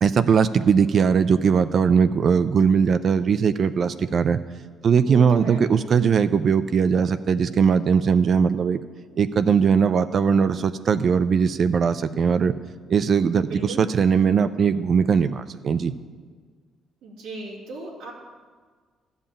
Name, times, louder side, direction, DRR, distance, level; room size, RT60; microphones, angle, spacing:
voice 1, 0.0-4.4 4.8-8.8 9.2-12.5 12.9-15.9, right 6 dB, 55° right, 11 dB, 0.5 m, -20 dB
voice 2, 4.8-6.0 13.3-13.8 17.0-18.1, right 2 dB, 90° right, -5 dB, 2.7 m, -37 dB
12.5 x 5.6 x 8.6 m, 1.5 s
supercardioid pair, 75°, 0 cm